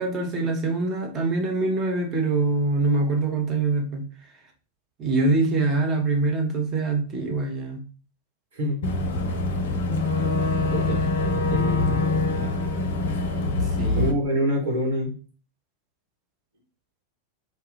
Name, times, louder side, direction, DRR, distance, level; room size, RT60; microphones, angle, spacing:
voice 1, 0.0-4.1 5.0-7.8 13.8-14.1, right 3 dB, 30° right, 0.7 m, -24 dB
voice 2, 8.5-8.8 10.7-12.1 13.9-15.1, equal, 60° right, 1.0 m, -27 dB
Boat Water vehicle / Engine, 8.8-14.1, left 2 dB, 60° left, 0.4 m, -24 dB
2.2 x 2.1 x 3.0 m
figure-of-eight pair, 90°, 0 cm